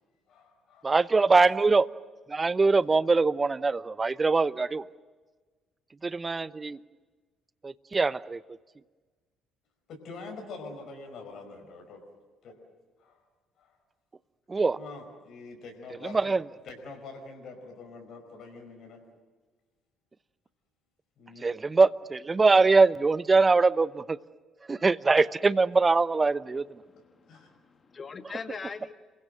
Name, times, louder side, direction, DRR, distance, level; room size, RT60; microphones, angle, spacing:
voice 1, 0.3-0.9 9.9-12.0 12.4-12.6 13.0-13.2 13.6-13.7 14.8-16.3 16.6-19.0 21.2-21.5 27.0-27.5, left 3 dB, 55° left, 4 dB, 5.2 m, -45 dB
voice 2, 0.8-1.9 2.3-4.8 6.0-6.8 7.6-8.4 14.5-14.8 16.1-16.4 21.4-24.2 24.7-26.6, right 4 dB, 25° right, 17 dB, 0.9 m, -23 dB
voice 3, 26.8-28.9, left 5 dB, 35° left, 8 dB, 2.1 m, -41 dB
29.0 x 23.5 x 6.6 m, 1.3 s
figure-of-eight pair, 45°, 0 cm